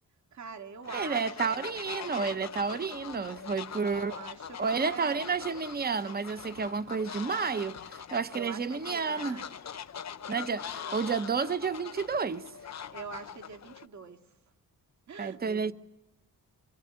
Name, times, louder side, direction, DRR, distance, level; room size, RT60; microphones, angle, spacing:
voice 1, 0.3-1.8 3.9-5.3 8.3-9.5 10.8-11.0 12.9-14.2 15.1-15.7, right 5 dB, 50° right, 2.4 m, -44 dB
Fowl, 0.8-13.9, left 8 dB, 50° left, 1.0 m, -42 dB
voice 2, 0.9-4.1 4.6-9.4 10.3-12.5 15.2-15.7, right 5 dB, 25° right, 1.0 m, -31 dB
26.0 x 25.5 x 8.8 m
wide cardioid pair, 160°, 35 cm